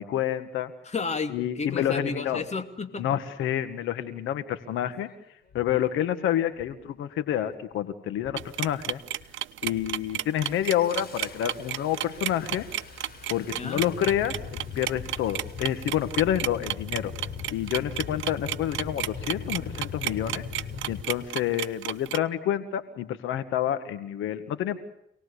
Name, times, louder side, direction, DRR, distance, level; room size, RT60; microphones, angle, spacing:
voice 1, 0.0-0.7 1.3-2.4 3.0-5.1 5.5-9.0 9.6-12.7 13.3-17.1 17.5-20.4 20.9-24.8, left 11 dB, 90° left, 11 dB, 1.8 m, -28 dB
voice 2, 0.8-3.1 13.5-13.8, left 4 dB, 35° left, 8 dB, 2.7 m, -32 dB
Engine starting, 4.7-4.8 5.5-5.8 6.5-6.9 7.2-7.7 8.2-8.7 9.1-9.3 9.6-21.0, left 6 dB, 50° left, 4.0 m, -40 dB
sound 1, 8.4-22.2, right 13 dB, 75° right, 0.9 m, -32 dB
27.0 x 19.0 x 8.3 m, 0.75 s
cardioid pair, 90°, 20 cm